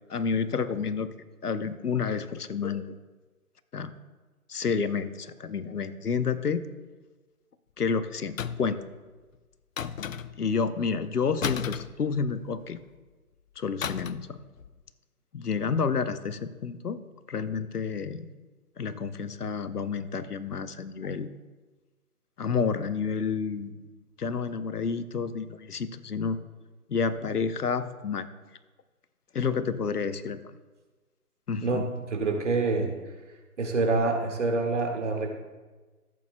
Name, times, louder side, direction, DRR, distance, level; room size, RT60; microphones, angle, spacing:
voice 1, 0.1-1.1 1.4-2.9 3.7-3.9 4.5-6.7 7.8-8.8 10.4-12.8 13.6-14.4 15.3-17.0 17.3-18.3 18.8-21.3 22.4-23.7 24.2-26.4 26.9-28.3 29.3-30.4 31.5-31.8, left 5 dB, 80° left, 12 dB, 0.9 m, -29 dB
sound 1, 8.4-8.8 9.8-10.5 11.4-12.6 13.8-14.3 14.6-14.8, left 8 dB, 60° left, 0.5 m, -34 dB
voice 2, 31.6-32.9 33.6-35.3, right 3 dB, 50° right, 3 dB, 1.8 m, -26 dB
15.5 x 8.5 x 2.2 m, 1.3 s
figure-of-eight pair, 155°, 45 cm